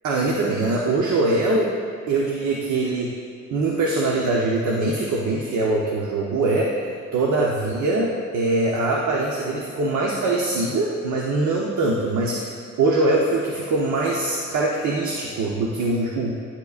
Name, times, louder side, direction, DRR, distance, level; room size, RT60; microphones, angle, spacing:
voice 1, 0.0-1.7 2.1-3.1 3.5-6.7 7.1-12.5 12.8-16.3, right 2 dB, 75° right, -2 dB, 1.0 m, -22 dB
11.0 x 7.0 x 2.5 m, 2.5 s
cardioid pair, 90°, 30 cm